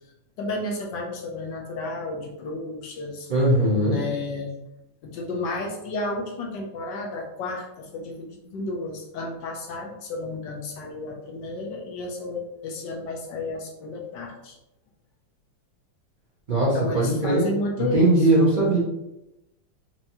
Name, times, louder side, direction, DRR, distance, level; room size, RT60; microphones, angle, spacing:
voice 1, 0.4-3.3 3.8-4.5 5.0-14.6 16.7-18.3, left 2 dB, 70° left, 1 dB, 1.2 m, -32 dB
voice 2, 3.3-4.0 16.5-17.5 17.8-18.8, right 1 dB, 55° right, -8 dB, 0.5 m, -20 dB
4.6 x 2.9 x 2.7 m, 0.91 s
omnidirectional pair, 2.3 m